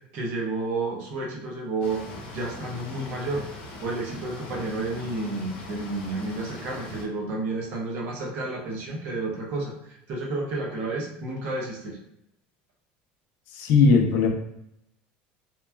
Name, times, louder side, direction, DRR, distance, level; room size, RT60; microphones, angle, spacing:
voice 1, 0.1-2.0 2.3-3.4 3.8-12.0, right 2 dB, 45° right, -1 dB, 0.6 m, -31 dB
sound 1, 1.8-7.1, left 2 dB, 85° left, 0.7 m, -41 dB
voice 2, 13.5-14.3, left 4 dB, 55° left, 3 dB, 0.4 m, -18 dB
2.9 x 2.2 x 2.3 m, 0.78 s
cardioid pair, 175°, 4 cm